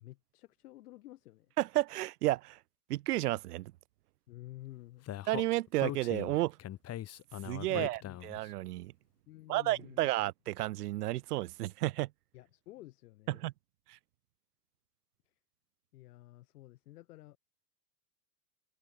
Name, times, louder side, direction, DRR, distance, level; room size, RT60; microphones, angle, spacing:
voice 1, 0.0-1.5 4.3-5.1 7.7-8.2 9.3-10.1 12.3-13.4 15.9-17.4, left 16 dB, 65° left, 7.2 m, -51 dB
voice 2, 1.6-2.6 2.9-3.7 5.3-6.6 7.4-8.9 9.5-12.1 13.3-13.5 13.9-14.0, right 16 dB, 70° right, 1.4 m, -32 dB
Speech, 5.1-8.5, left 12 dB, 30° left, 4.4 m, -40 dB
hypercardioid pair, 125°, 48 cm